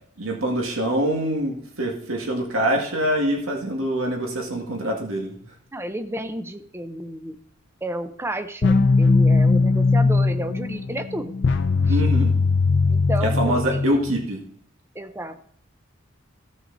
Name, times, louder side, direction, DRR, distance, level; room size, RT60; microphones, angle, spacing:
voice 1, 0.2-5.3 11.9-12.3 13.2-14.4, right 1 dB, 80° right, 1 dB, 1.9 m, -24 dB
voice 2, 5.7-7.4 7.8-11.3 11.9-12.0 12.9-13.8 14.9-15.4, right 1 dB, 10° right, 10 dB, 0.6 m, -32 dB
sound 1, 8.6-14.2, left 3 dB, 55° left, 0.6 m, -19 dB
15.0 x 6.3 x 4.0 m, 0.64 s
head